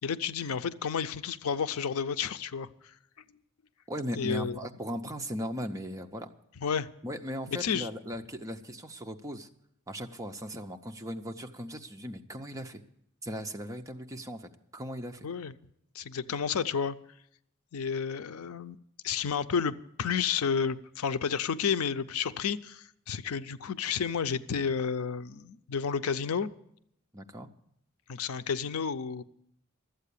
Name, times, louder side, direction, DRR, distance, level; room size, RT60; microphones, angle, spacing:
voice 1, 0.0-2.9 4.2-4.6 6.6-6.9 7.5-7.9 15.2-15.5 15.9-17.0 17.7-18.8 19.0-26.5 28.1-29.2, left 6 dB, 80° left, 13 dB, 0.5 m, -31 dB
voice 2, 3.9-6.3 7.0-9.5 9.9-12.8 13.2-15.3 27.1-27.5, equal, 15° right, 5 dB, 0.6 m, -38 dB
12.5 x 8.1 x 8.3 m, 0.75 s
head